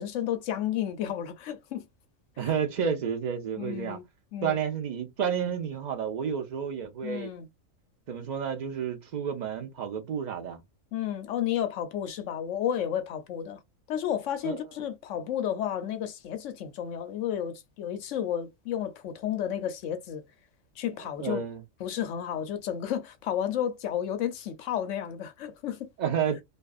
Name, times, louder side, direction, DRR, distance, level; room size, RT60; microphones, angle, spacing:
voice 1, 0.0-1.9 2.4-2.5 3.6-4.6 7.0-7.5 10.9-13.6 13.9-20.2 20.8-21.4 21.8-25.9, left 10 dB, 70° left, 0.9 m, -32 dB
voice 2, 2.4-4.0 4.4-7.3 8.1-10.6 14.4-14.6 21.2-21.6 26.0-26.4, right 7 dB, 85° right, 0.3 m, -30 dB
2.5 x 2.3 x 2.3 m
omnidirectional pair, 1.4 m